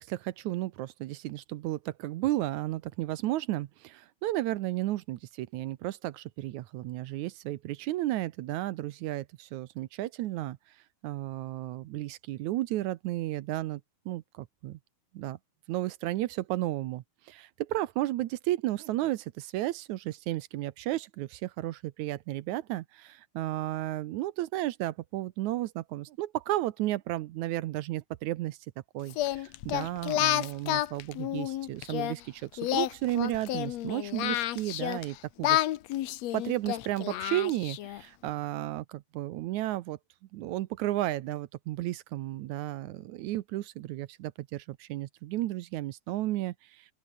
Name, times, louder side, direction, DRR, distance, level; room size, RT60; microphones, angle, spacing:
voice 1, 0.0-10.6 11.0-14.8 15.1-15.4 15.7-28.6 28.9-35.6 36.3-40.0 40.3-46.9, right 15 dB, 75° right, 2.0 m, -33 dB
Singing, 29.1-32.1 32.6-35.1 35.4-38.0, left 14 dB, 65° left, 1.9 m, -30 dB
open air
omnidirectional pair, 3.7 m